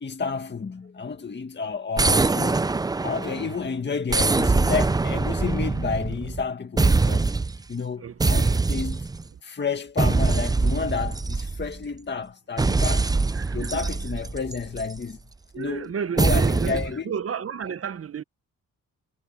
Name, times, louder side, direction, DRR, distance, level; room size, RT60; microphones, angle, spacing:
voice 1, 0.0-2.6 3.0-7.4 7.7-9.1 9.4-13.1 13.5-15.2 15.6-17.1, left 5 dB, 35° left, 1.9 m, -30 dB
sound 1, 2.0-3.6 4.1-6.4 6.8-7.6 8.2-9.2 10.0-11.8 12.6-15.0 16.2-16.9, right 3 dB, 10° right, 0.4 m, -23 dB
voice 2, 3.3-3.8 8.0-8.7 9.3-9.4 13.3-13.9 15.5-18.2, right 7 dB, 45° right, 1.0 m, -33 dB
cardioid pair, 105°, 33 cm